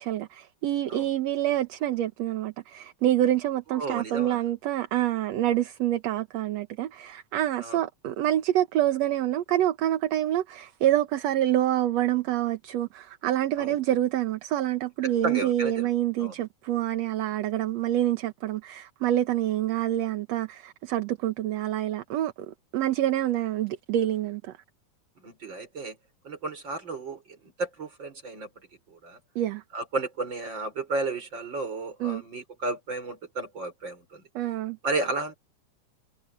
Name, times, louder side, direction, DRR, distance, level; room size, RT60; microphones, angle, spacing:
voice 1, 0.0-24.5 29.4-29.6 32.0-32.2 34.4-34.8, right 13 dB, 65° right, 2.1 m, -27 dB
voice 2, 3.7-4.4 7.6-7.8 13.6-13.8 15.0-15.9 16.2-16.4 25.2-26.0 26.2-28.5 28.9-29.2 29.7-34.3 34.8-35.4, right 3 dB, 35° right, 5.9 m, -33 dB
omnidirectional pair, 3.4 m